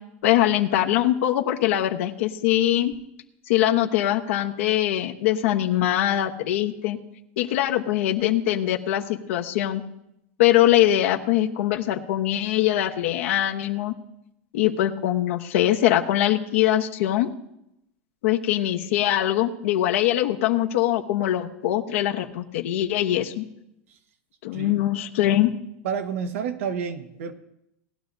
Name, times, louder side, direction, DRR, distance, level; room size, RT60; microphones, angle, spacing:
voice 1, 0.2-2.9 3.5-7.0 7.4-9.8 10.4-13.9 14.5-17.3 18.2-23.4 24.4-25.5, left 13 dB, 75° left, 3 dB, 1.1 m, -22 dB
voice 2, 25.8-27.3, right 6 dB, 80° right, 7 dB, 1.4 m, -30 dB
19.0 x 11.0 x 2.7 m, 0.81 s
supercardioid pair, 130°, 7 cm